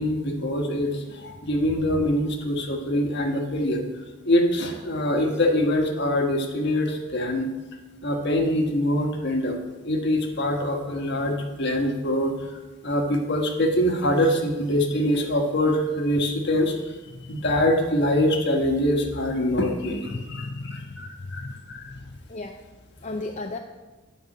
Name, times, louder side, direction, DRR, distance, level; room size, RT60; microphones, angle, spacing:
voice 1, 0.0-3.8 4.2-7.5 8.0-9.6 9.8-16.9 17.2-21.9, left 1 dB, 55° left, 3 dB, 1.4 m, -24 dB
voice 2, 17.1-17.5 20.1-21.5 21.8-22.6 23.0-23.6, left 2 dB, 35° left, 4 dB, 0.5 m, -35 dB
9.1 x 5.4 x 7.8 m, 1.2 s
head